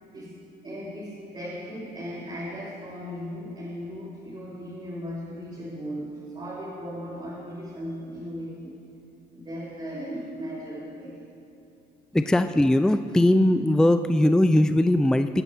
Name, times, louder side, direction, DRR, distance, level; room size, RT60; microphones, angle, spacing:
voice 1, 0.6-8.8 9.3-11.2, equal, 30° right, -9 dB, 4.2 m, -37 dB
voice 2, 12.1-15.4, left 1 dB, 5° left, 9 dB, 0.4 m, -20 dB
21.0 x 9.1 x 7.0 m, 2.7 s
cardioid pair, 110°, 17 cm